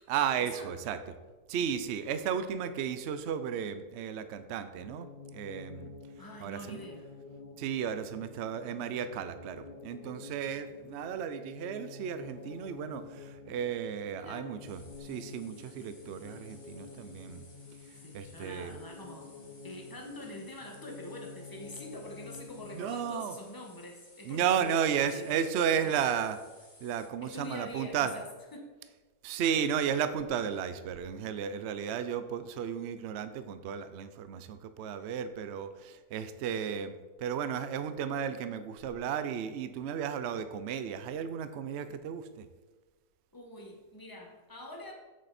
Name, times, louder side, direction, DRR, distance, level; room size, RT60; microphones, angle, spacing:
voice 1, 0.1-1.0 1.5-5.9 6.4-6.8 7.6-17.4 18.1-18.8 22.7-23.4 24.2-26.4 26.8-28.1 29.2-42.5, right 8 dB, 65° right, 11 dB, 0.7 m, -34 dB
sound 1, 4.7-23.5, left 4 dB, 40° left, 0.8 m, -49 dB
voice 2, 6.2-7.1 14.1-14.5 17.9-19.3 19.6-25.9 27.2-28.7 43.3-44.9, left 1 dB, 15° left, 0 dB, 1.3 m, -45 dB
sound 2, 14.6-27.1, left 2 dB, 75° left, 2.6 m, -59 dB
8.1 x 7.5 x 4.2 m, 1.3 s
omnidirectional pair, 1.7 m